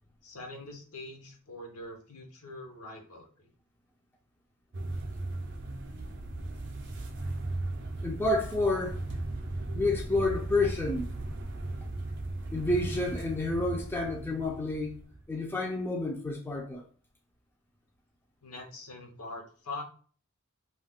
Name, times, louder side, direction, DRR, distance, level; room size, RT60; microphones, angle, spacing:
voice 1, 0.2-3.5 18.4-19.8, left 2 dB, 80° left, 0.8 m, -43 dB
sound 1, 4.7-15.3, right 2 dB, 50° right, 0.5 m, -37 dB
voice 2, 8.0-9.0 9.7-11.1 12.5-15.0 15.3-16.8, left 2 dB, 10° left, 0.4 m, -29 dB
2.3 x 2.2 x 3.4 m
head